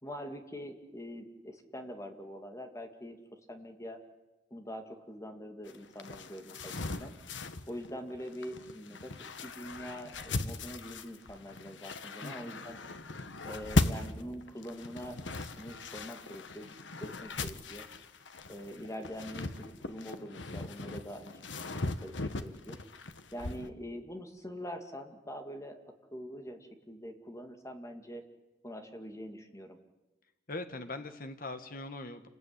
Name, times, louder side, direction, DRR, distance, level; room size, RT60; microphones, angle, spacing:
voice 1, 0.0-3.2 3.5-4.0 4.5-7.1 7.7-12.8 13.4-17.9 18.5-21.7 22.0-22.8 23.3-25.8 26.1-28.2 28.6-29.8, equal, 15° left, 5 dB, 2.5 m, -44 dB
sound 1, 5.7-23.7, left 2 dB, 85° left, 1.4 m, -38 dB
voice 2, 12.2-12.7 30.5-32.3, left 2 dB, 50° left, 8 dB, 1.6 m, -41 dB
28.5 x 20.5 x 9.9 m, 1.1 s
head